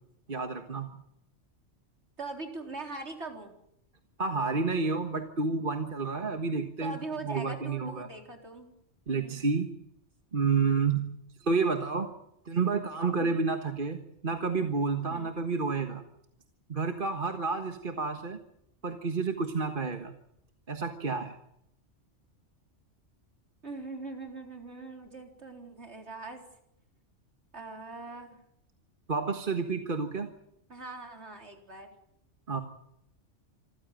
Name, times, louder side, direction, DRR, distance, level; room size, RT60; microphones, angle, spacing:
voice 1, 0.3-0.9 4.2-7.0 7.2-8.1 9.1-9.8 10.3-11.1 11.4-12.1 12.5-16.0 16.7-18.4 18.8-20.1 20.7-21.4 29.1-30.3 32.5-32.6, right 4 dB, 45° right, 7 dB, 1.7 m, -30 dB
voice 2, 2.2-3.5 6.8-8.7 9.1-9.4 13.2-13.4 15.1-15.3 23.6-26.4 27.5-28.3 30.7-31.9, right 3 dB, 65° right, 4 dB, 4.3 m, -41 dB
27.0 x 15.0 x 9.1 m, 0.76 s
omnidirectional pair, 1.2 m